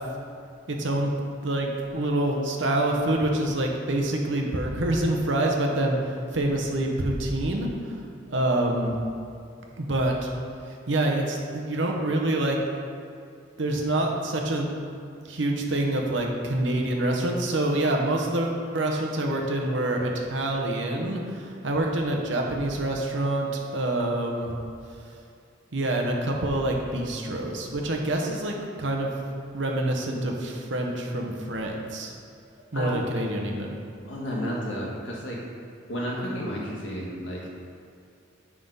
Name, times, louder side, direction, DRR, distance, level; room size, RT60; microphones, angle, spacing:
voice 1, 0.7-1.1 1.4-8.0 8.3-9.0 9.8-10.3 10.7-12.6 13.6-14.7 15.2-24.5 25.7-29.1 29.5-32.1 32.7-33.8, right 1 dB, 70° right, 1 dB, 0.9 m, -26 dB
voice 2, 34.1-35.4 35.9-37.5, equal, 70° left, -3 dB, 1.5 m, -32 dB
7.5 x 5.5 x 3.9 m, 2.5 s
head